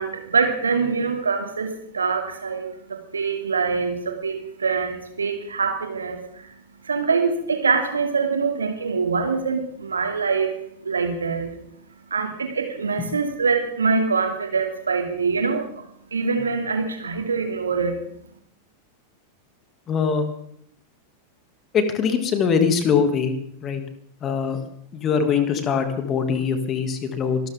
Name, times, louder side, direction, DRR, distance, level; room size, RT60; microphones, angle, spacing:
voice 1, 0.0-6.6 6.8-10.5 10.8-11.5 12.1-18.0, right 5 dB, 75° right, 5 dB, 2.8 m, -24 dB
voice 2, 19.9-20.3 21.7-23.8 24.2-24.6 24.9-27.4, left 6 dB, 30° left, 7 dB, 2.5 m, -22 dB
24.5 x 13.5 x 3.8 m, 0.68 s
figure-of-eight pair, 90°, 0 cm